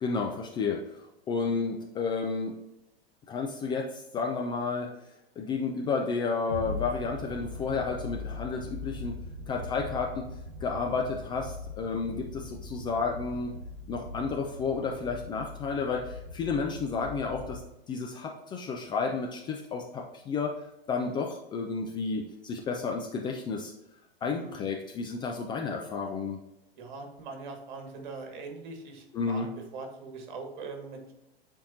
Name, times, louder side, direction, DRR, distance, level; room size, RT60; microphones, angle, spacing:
voice 1, 0.0-2.6 3.3-4.9 5.4-9.2 9.5-10.3 10.6-13.5 13.9-17.6 17.9-20.5 20.9-23.7 24.2-26.4 29.1-29.5, left 4 dB, 15° left, 1 dB, 0.5 m, -31 dB
sound 1, 6.5-17.7, left 2 dB, 80° right, 0.7 m, -41 dB
voice 2, 24.2-24.5 26.8-29.5 29.7-31.0, right 4 dB, 50° right, 3 dB, 1.8 m, -42 dB
10.0 x 4.5 x 2.7 m, 0.93 s
figure-of-eight pair, 100°, 31 cm